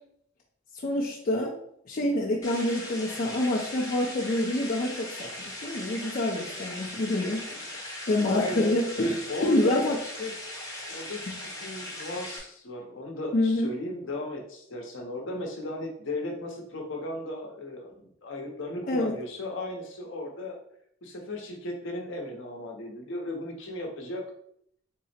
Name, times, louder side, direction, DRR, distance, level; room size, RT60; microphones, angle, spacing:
voice 1, 0.8-1.6 1.9-7.5 8.1-10.0 13.3-13.7 18.9-19.1, left 1 dB, 45° left, -2 dB, 0.5 m, -27 dB
sound 1, 2.4-12.4, left 1 dB, 20° left, 0.9 m, -39 dB
voice 2, 8.2-8.8 9.3-9.9 10.2-10.3 10.9-20.6 21.0-24.3, left 1 dB, 65° left, 2 dB, 0.8 m, -36 dB
3.6 x 2.0 x 4.2 m, 0.69 s
head